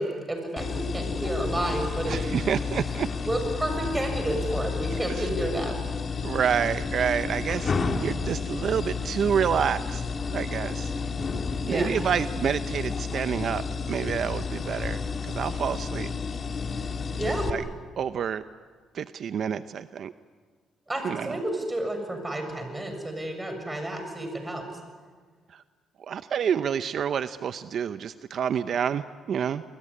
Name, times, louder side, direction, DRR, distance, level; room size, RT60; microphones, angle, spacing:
voice 1, 0.0-2.2 3.3-5.8 11.6-11.9 17.2-17.5 20.9-24.6, right 1 dB, 15° right, 5 dB, 7.0 m, -30 dB
sound 1, 0.6-17.5, left 5 dB, 40° left, 2.5 m, -31 dB
voice 2, 2.1-3.1 4.9-5.2 6.2-10.0 10.3-10.9 11.7-16.1 17.5-17.6 18.0-18.4 18.9-20.1 21.0-21.4 25.5-25.6 26.1-29.6, right 8 dB, 60° right, 12 dB, 0.7 m, -28 dB
28.0 x 21.5 x 9.8 m, 1.5 s
cardioid pair, 85°, 0 cm